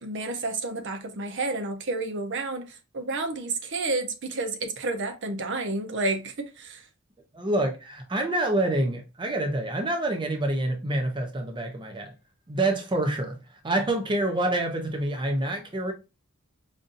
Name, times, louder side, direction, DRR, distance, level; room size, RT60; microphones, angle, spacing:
voice 1, 0.0-6.8, right 2 dB, 60° right, 0.8 m, -30 dB
voice 2, 7.3-12.1 12.5-15.9, right 1 dB, 20° right, 0.6 m, -27 dB
5.1 x 2.7 x 2.5 m
head